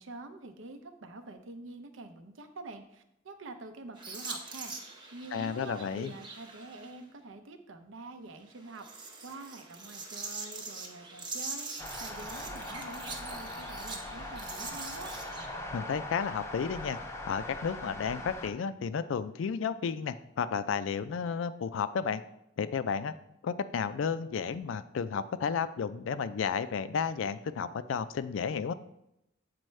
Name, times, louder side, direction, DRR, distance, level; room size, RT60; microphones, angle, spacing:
voice 1, 0.0-15.1, right 2 dB, 75° right, 7 dB, 0.6 m, -47 dB
sound 1, 4.0-7.0 8.5-15.5, right 3 dB, 25° right, 0.7 m, -43 dB
voice 2, 5.3-6.1 15.7-17.0 17.3-22.2 22.6-23.1 23.4-28.7, left 6 dB, 70° left, 13 dB, 0.3 m, -32 dB
sound 2, 11.8-18.5, left 2 dB, 15° left, 0.5 m, -41 dB
7.7 x 4.4 x 3.2 m, 0.81 s
head